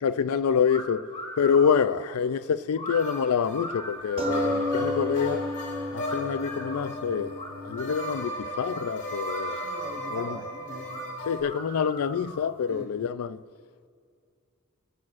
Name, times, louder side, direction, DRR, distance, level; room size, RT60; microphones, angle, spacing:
voice 1, 0.0-5.5 5.9-9.6 10.1-10.4 11.3-13.4, left 6 dB, 85° left, 0.4 m, -27 dB
sound 1, 0.6-0.8 1.1-1.9 2.7-3.0 3.5-5.0 6.0-6.8 7.3-8.3 8.7-8.8 9.2-10.2 10.8-11.0 11.4-12.5, left 1 dB, 30° left, 2.6 m, -39 dB
sound 2, 2.9-11.4, left 1 dB, 55° left, 1.9 m, -36 dB
sound 3, 4.2-9.2 9.9-10.0 10.3-10.4, left 1 dB, 25° right, 1.0 m, -32 dB
voice 2, 9.4-11.2 12.7-12.9, right 1 dB, 55° right, 2.4 m, -42 dB
25.5 x 11.0 x 2.5 m
head